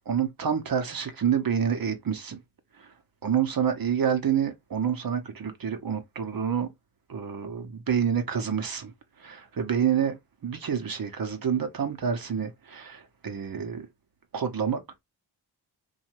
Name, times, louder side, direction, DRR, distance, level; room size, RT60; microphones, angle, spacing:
voice 1, 0.1-2.4 2.8-2.9 3.2-6.7 7.1-8.9 9.2-13.9 14.3-14.8, right 8 dB, 50° right, 0.8 m, -28 dB
2.6 x 2.4 x 2.9 m
cardioid pair, 50°, 46 cm